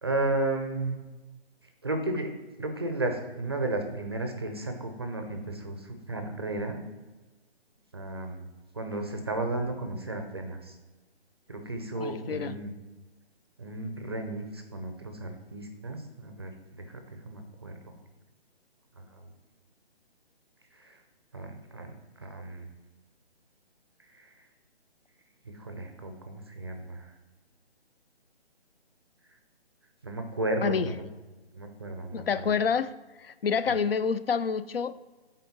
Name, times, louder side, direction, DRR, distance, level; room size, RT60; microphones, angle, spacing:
voice 1, 0.0-1.0 1.8-2.3 2.6-6.8 7.9-8.5 8.7-10.7 11.5-12.7 13.6-17.7 19.1-19.3 20.8-21.0 21.3-21.9 22.2-22.7 24.1-24.3 25.5-27.1 30.0-31.0 31.5-32.5 33.7-33.8, right 2 dB, 25° right, 5 dB, 0.5 m, -34 dB
voice 2, 12.0-12.6 30.6-30.9 32.1-32.9 33.2-35.0, left 6 dB, 60° left, 14 dB, 0.4 m, -28 dB
8.2 x 3.8 x 4.2 m, 1.2 s
figure-of-eight pair, 155°, 33 cm